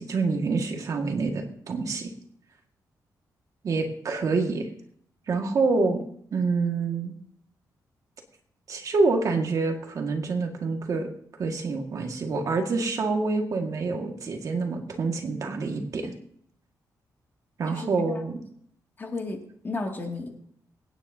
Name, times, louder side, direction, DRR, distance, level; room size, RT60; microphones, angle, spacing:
voice 1, 0.0-2.1 3.6-4.7 5.3-6.0 6.3-7.1 8.7-11.1 11.4-16.1 17.6-18.4, right 3 dB, 55° right, 3 dB, 1.9 m, -27 dB
voice 2, 17.7-18.2 19.0-20.4, left 3 dB, 30° left, 1 dB, 2.3 m, -34 dB
24.5 x 9.7 x 2.8 m, 0.65 s
wide cardioid pair, 145°, 7 cm